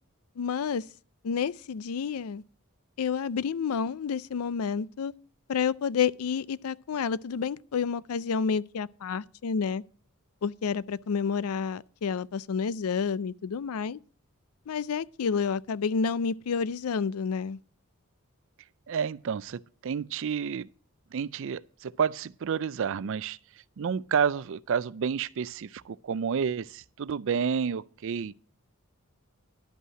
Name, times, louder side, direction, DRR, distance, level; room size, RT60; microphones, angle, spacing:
voice 1, 0.4-0.8 1.2-2.4 3.0-5.1 5.5-9.8 10.4-14.0 14.7-17.6, left 6 dB, 85° left, 0.4 m, -29 dB
voice 2, 18.9-20.7 21.1-23.4 23.8-28.4, right 6 dB, 60° right, 0.4 m, -30 dB
11.5 x 5.5 x 7.5 m
head